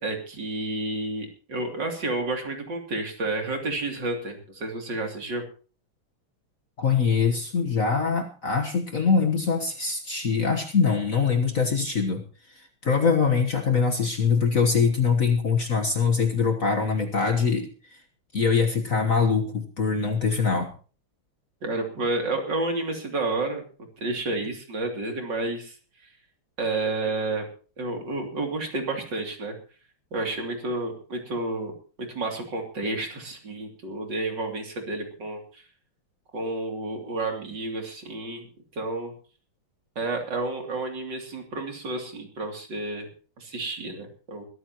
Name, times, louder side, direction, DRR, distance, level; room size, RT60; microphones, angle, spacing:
voice 1, 0.0-5.4 21.6-23.6 24.0-25.8 26.6-27.5 27.8-29.6 30.1-31.7 32.0-35.6 36.3-38.5 38.7-39.1 40.0-43.1 43.4-44.4, right 2 dB, 55° right, 3 dB, 3.5 m, -30 dB
voice 2, 6.8-12.2 12.5-17.7 18.3-20.7, left 5 dB, 45° left, 5 dB, 1.5 m, -23 dB
21.5 x 14.0 x 3.0 m, 0.38 s
omnidirectional pair, 2.4 m